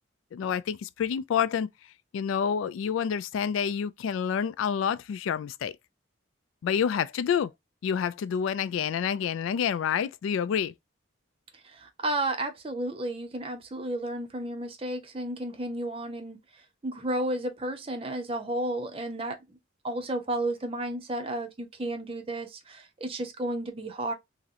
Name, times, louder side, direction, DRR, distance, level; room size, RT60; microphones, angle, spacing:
voice 1, 0.3-1.7 2.1-5.8 6.6-7.5 7.8-10.7, left 7 dB, 85° left, 0.3 m, -28 dB
voice 2, 11.6-16.4 16.8-19.4 19.8-24.1, right 1 dB, 30° right, 0.5 m, -32 dB
3.6 x 2.0 x 2.7 m
head